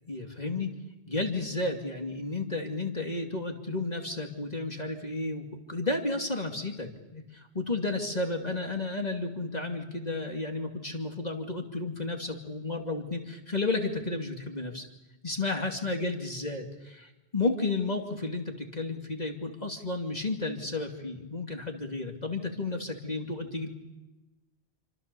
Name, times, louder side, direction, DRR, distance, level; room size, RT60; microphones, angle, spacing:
voice 1, 0.1-0.7 1.1-14.9 15.2-23.7, left 2 dB, 40° left, 2 dB, 2.7 m, -32 dB
28.5 x 25.5 x 6.9 m, 1.0 s
omnidirectional pair, 1.1 m